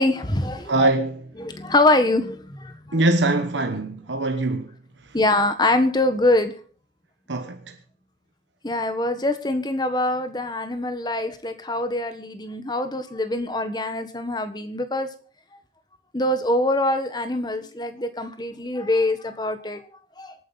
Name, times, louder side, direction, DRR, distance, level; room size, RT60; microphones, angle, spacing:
voice 1, 0.0-0.9 1.4-3.0 5.1-6.5 8.6-15.1 16.1-19.8 20.2-20.3, left 2 dB, 25° left, 1.4 m, -24 dB
voice 2, 0.7-1.3 2.9-4.7 7.3-7.7, right 2 dB, 85° right, 1.2 m, -22 dB
25.0 x 9.5 x 4.1 m
head